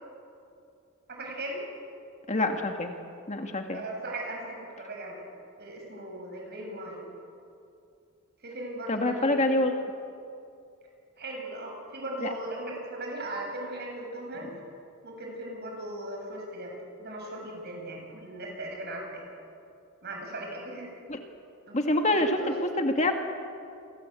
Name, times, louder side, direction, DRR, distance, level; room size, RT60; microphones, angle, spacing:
voice 1, 1.1-1.6 3.7-5.1 5.6-7.0 8.4-9.5 11.2-14.5 15.0-19.3 20.0-20.9 21.7-22.0 22.4-22.5, right 1 dB, 50° right, 1 dB, 8.0 m, -38 dB
voice 2, 2.3-2.9 3.3-3.8 8.9-9.8 12.2-12.3 21.1-21.2 21.7-23.1, left 1 dB, 30° left, 4 dB, 1.9 m, -26 dB
29.5 x 24.0 x 8.4 m, 2.5 s
head